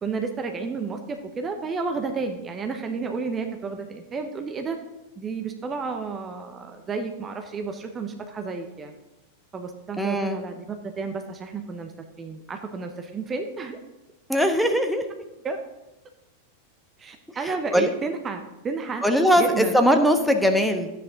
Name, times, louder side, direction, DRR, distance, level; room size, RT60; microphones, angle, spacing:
voice 1, 0.0-4.8 5.2-8.9 9.5-10.6 11.0-11.9 12.2-13.8 15.4-15.6 17.0-19.1 19.4-19.7, right 4 dB, 20° right, 5 dB, 1.0 m, -31 dB
voice 2, 10.0-10.4 14.3-15.1 17.4-17.9 19.0-20.9, equal, ahead, 4 dB, 1.2 m, -21 dB
13.0 x 9.1 x 3.9 m, 0.99 s
figure-of-eight pair, 90°, 0 cm